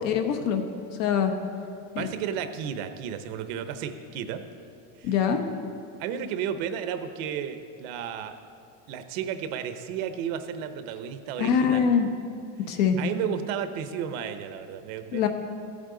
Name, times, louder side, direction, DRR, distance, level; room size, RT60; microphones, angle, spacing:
voice 1, 0.0-0.6 1.0-1.3 1.9-2.1 5.0-5.4 11.4-12.1 12.7-13.0 15.1-15.3, left 7 dB, 65° left, 6 dB, 1.1 m, -23 dB
voice 2, 2.0-4.4 5.0-5.2 6.0-8.4 8.9-11.9 13.0-15.3, right 8 dB, 70° right, 9 dB, 0.9 m, -33 dB
14.5 x 8.7 x 3.8 m, 2.5 s
cardioid pair, 160°, 42 cm